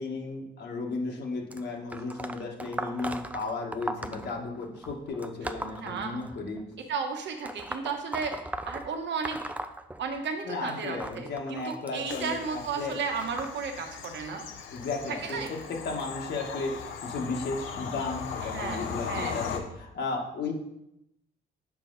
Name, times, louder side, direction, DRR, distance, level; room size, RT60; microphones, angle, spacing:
voice 1, 0.0-6.6 10.5-13.0 14.7-20.5, left 3 dB, 60° left, 0 dB, 1.5 m, -34 dB
sound 1, 1.5-6.6 7.4-10.4 10.7-16.0 16.8-17.1 18.1-18.2 19.1-19.2 19.9-20.0, right 1 dB, 5° right, 0.4 m, -39 dB
voice 2, 5.8-6.2 6.9-8.4 8.7-9.4 10.0-14.4 15.1-15.5 18.4-19.4, right 5 dB, 65° right, 5 dB, 1.1 m, -34 dB
Bird vocalization bird call bird song / Train, 12.1-19.6, left 6 dB, 80° left, 0.9 m, -38 dB
7.3 x 4.9 x 4.0 m, 0.84 s
cardioid pair, 90°, 20 cm